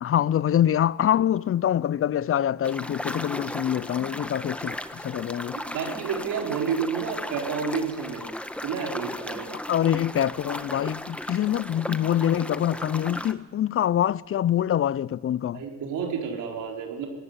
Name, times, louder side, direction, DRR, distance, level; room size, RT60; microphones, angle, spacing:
voice 1, 0.0-5.6 9.7-15.6, left 10 dB, 45° left, 0.6 m, -25 dB
sound 1, 2.6-13.3, left 1 dB, 5° left, 1.3 m, -36 dB
voice 2, 5.7-8.2 8.6-9.5 15.5-17.1, right 6 dB, 80° right, 4.7 m, -30 dB
19.0 x 16.5 x 9.9 m
cardioid pair, 90°, 30 cm